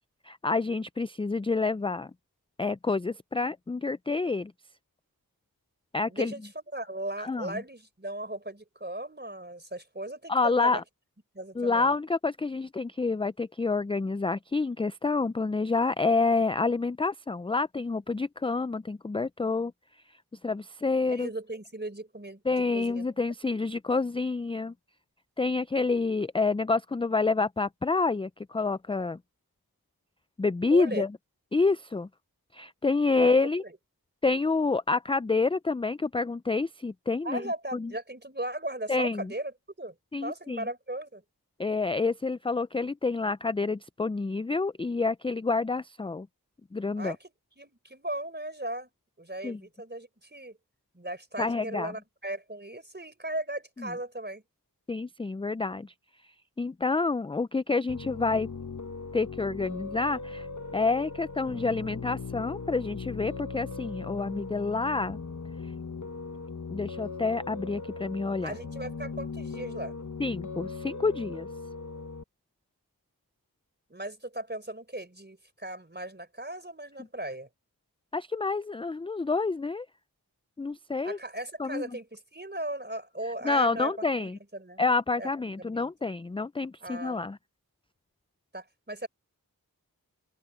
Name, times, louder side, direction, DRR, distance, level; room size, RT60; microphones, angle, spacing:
voice 1, 0.2-2.1 2.6-4.5 5.9-6.3 7.2-7.6 10.3-10.8 11.6-19.7 20.4-21.3 22.5-24.7 25.4-29.2 30.4-31.1 31.5-32.1 32.5-33.6 34.2-37.4 37.7-37.9 38.9-39.3 40.1-40.6 41.6-46.3 46.7-47.2 49.4-49.6 51.4-51.9 53.8-53.9 54.9-55.9 56.6-58.5 59.1-60.5 60.7-65.2 66.7-68.6 70.2-71.5 78.1-79.9 80.6-81.2 81.6-81.8 83.4-84.4 84.8-87.4, left 3 dB, 15° left, 0.3 m, -28 dB
voice 2, 6.1-10.8 11.3-11.9 21.1-22.4 22.7-23.1 30.7-31.0 33.2-33.3 33.6-33.7 37.2-41.2 47.0-47.3 47.6-48.9 49.2-50.6 50.9-54.4 68.4-70.0 73.9-77.5 81.0-83.9 84.2-84.8 85.2-85.3 85.6-85.9 86.8-87.2 88.5-89.1, right 1 dB, 30° right, 4.2 m, -37 dB
Piano, 57.9-72.2, left 4 dB, 50° left, 1.1 m, -39 dB
open air
wide cardioid pair, 45°, 37 cm